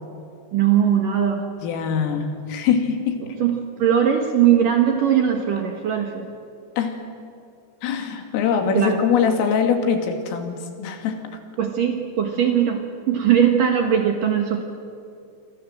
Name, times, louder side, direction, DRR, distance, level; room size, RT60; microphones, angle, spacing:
voice 1, 0.5-1.4 3.4-6.3 8.7-9.0 11.6-14.6, right 9 dB, 60° right, 4 dB, 2.5 m, -20 dB
voice 2, 1.6-3.2 6.8-7.0 7.8-11.2, left 7 dB, 85° left, 5 dB, 4.9 m, -23 dB
28.0 x 24.0 x 7.8 m, 2.5 s
omnidirectional pair, 5.7 m